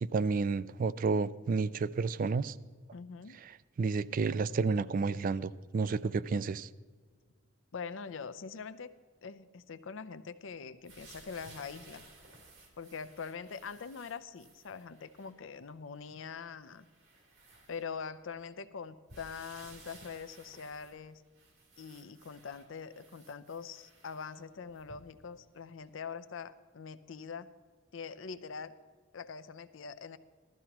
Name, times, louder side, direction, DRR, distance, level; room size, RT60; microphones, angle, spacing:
voice 1, 0.0-2.6 3.8-6.7, right 4 dB, 45° right, 17 dB, 0.3 m, -31 dB
voice 2, 2.9-3.4 7.7-8.9 9.2-12.0 12.8-16.9 17.7-21.2 21.8-27.5 27.9-28.7 29.1-30.2, left 5 dB, 70° left, 13 dB, 0.5 m, -43 dB
sound 1, 10.8-15.4 16.0-16.1 16.6-18.3 19.1-25.3 25.9-26.0, right 2 dB, 90° right, 3.1 m, -57 dB
15.5 x 13.0 x 3.0 m, 1.5 s
head